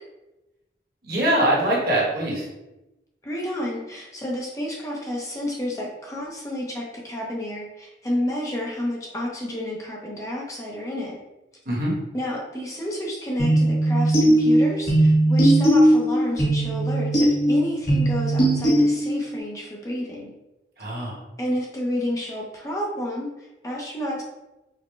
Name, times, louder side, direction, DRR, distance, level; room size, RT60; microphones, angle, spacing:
voice 1, 1.0-2.5 11.6-11.9 20.8-21.2, right 1 dB, 55° right, -4 dB, 1.2 m, -23 dB
voice 2, 3.2-11.2 12.1-20.3 21.4-24.2, left 1 dB, 20° left, -3 dB, 0.5 m, -30 dB
sound 1, 13.4-19.4, right 1 dB, 50° left, 1.4 m, -19 dB
5.0 x 2.1 x 3.1 m, 1.0 s
head